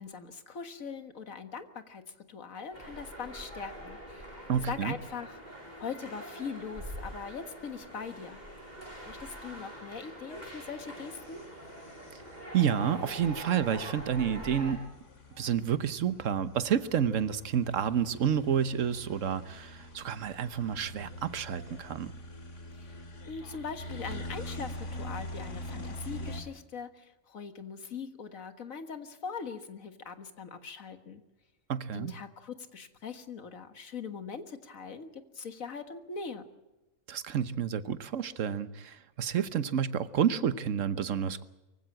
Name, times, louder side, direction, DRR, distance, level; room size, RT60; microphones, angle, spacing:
voice 1, 0.0-2.0 2.3-8.4 9.0-11.4 22.7-31.2 31.9-36.4, left 5 dB, 85° left, 8 dB, 2.0 m, -41 dB
sound 1, 2.7-14.7, equal, 30° right, 8.0 m, -44 dB
voice 2, 4.5-5.0 12.5-14.9 15.4-22.1 31.7-32.1 37.1-41.4, right 8 dB, 70° right, 13 dB, 1.3 m, -29 dB
sound 2, 10.3-26.4, left 1 dB, 65° left, 2.6 m, -45 dB
24.0 x 16.0 x 8.7 m, 1.0 s
omnidirectional pair, 1.4 m